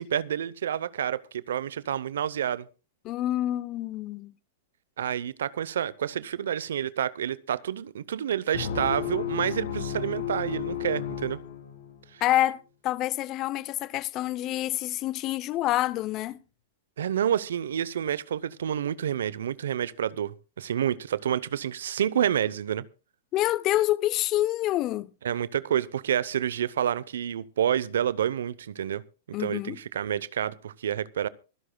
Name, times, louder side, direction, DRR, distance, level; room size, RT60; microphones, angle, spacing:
voice 1, 0.0-2.7 5.0-11.4 12.1-12.2 17.0-22.8 25.2-29.0 29.4-31.3, right 9 dB, 75° right, 0.7 m, -29 dB
voice 2, 3.0-4.3 12.2-16.4 23.3-25.1 29.3-29.8, left 14 dB, 40° left, 0.6 m, -27 dB
sound 1, 8.5-12.1, left 9 dB, 75° left, 3.1 m, -33 dB
25.5 x 11.0 x 2.3 m
hypercardioid pair, 110°, 0 cm